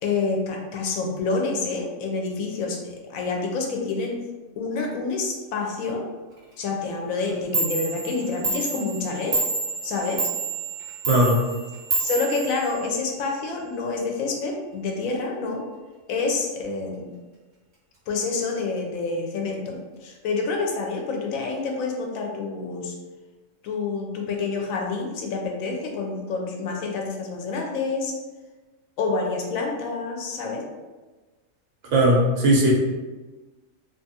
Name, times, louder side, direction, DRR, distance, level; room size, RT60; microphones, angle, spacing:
voice 1, 0.0-4.2 4.6-6.0 6.6-9.4 9.8-10.2 12.0-15.6 16.1-17.1 18.1-22.9 23.6-28.1 29.0-30.6, left 4 dB, 80° left, 1 dB, 1.0 m, -28 dB
Clock, 7.2-7.3 7.5-13.2, right 3 dB, 35° right, 1.1 m, -29 dB
voice 2, 11.1-11.4 31.9-32.7, right 1 dB, 70° right, -2 dB, 0.9 m, -18 dB
2.5 x 2.4 x 2.7 m, 1.2 s
omnidirectional pair, 1.4 m